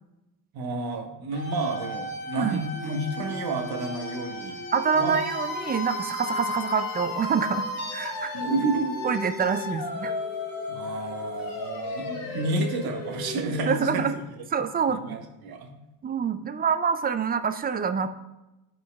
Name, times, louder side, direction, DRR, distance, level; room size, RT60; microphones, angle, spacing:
voice 1, 0.5-4.6 4.9-5.2 8.3-9.0 10.7-14.2 14.9-15.7, right 2 dB, 50° right, 4 dB, 1.3 m, -30 dB
sound 1, 1.3-14.1, left 2 dB, 45° left, 1.5 m, -34 dB
voice 2, 4.7-7.7 7.9-8.3 9.0-10.1 13.7-14.1 14.5-15.2 16.0-18.1, right 6 dB, 20° right, 10 dB, 0.4 m, -26 dB
12.0 x 4.4 x 2.3 m, 0.98 s
hypercardioid pair, 65°, 47 cm